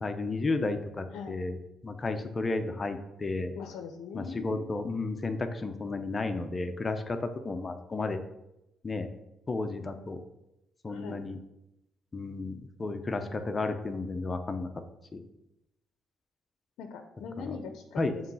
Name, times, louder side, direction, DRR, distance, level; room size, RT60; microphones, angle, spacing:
voice 1, 0.0-1.6 1.8-3.5 4.1-8.2 8.8-9.1 9.5-10.2 10.8-11.4 12.1-14.7 15.1-15.2 18.0-18.1, left 3 dB, 30° left, 7 dB, 0.7 m, -32 dB
voice 2, 3.5-4.6 10.9-11.2 16.8-18.3, left 6 dB, 85° left, 4 dB, 0.6 m, -41 dB
7.3 x 3.2 x 5.3 m, 0.88 s
cardioid pair, 90°, 0 cm